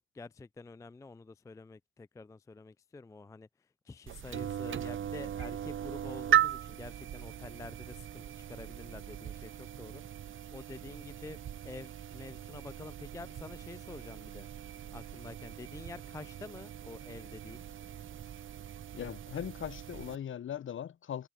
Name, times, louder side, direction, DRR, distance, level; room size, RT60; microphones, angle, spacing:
voice 1, 0.0-11.4 11.6-14.5 14.9-17.7, left 3 dB, 10° left, 0.4 m, -48 dB
sound 1, 4.1-20.2, right 10 dB, 45° right, 0.8 m, -37 dB
voice 2, 18.9-21.3, left 9 dB, 40° left, 0.9 m, -39 dB
hypercardioid pair, 60°, 29 cm